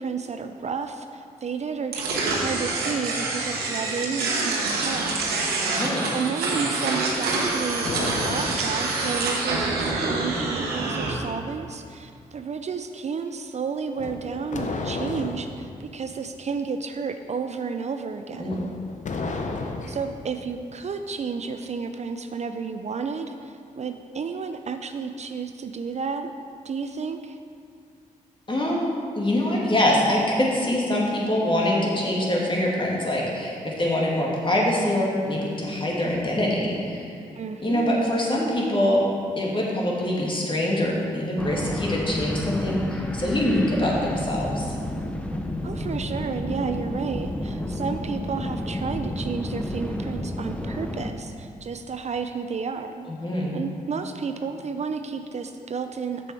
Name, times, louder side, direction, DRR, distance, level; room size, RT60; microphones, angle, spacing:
voice 1, 0.0-5.5 6.1-18.7 19.9-26.3 26.6-27.4 37.4-38.2 45.6-53.1 53.5-56.3, right 5 dB, 45° right, 8 dB, 0.5 m, -32 dB
sound 1, 1.9-11.1, right 3 dB, 90° right, 1.1 m, -26 dB
voice 2, 5.8-6.1 18.4-18.6 28.5-28.9 29.2-37.1 37.6-39.0 39.4-44.7 53.1-53.5, left 1 dB, 30° left, -3 dB, 2.1 m, -24 dB
sound 2, 7.2-9.0 14.0-15.5 18.4-20.1, left 3 dB, 50° left, 0.8 m, -32 dB
sound 3, 41.4-51.1, left 1 dB, 10° left, 0.7 m, -31 dB
6.8 x 6.7 x 4.7 m, 2.4 s
supercardioid pair, 50°, 16 cm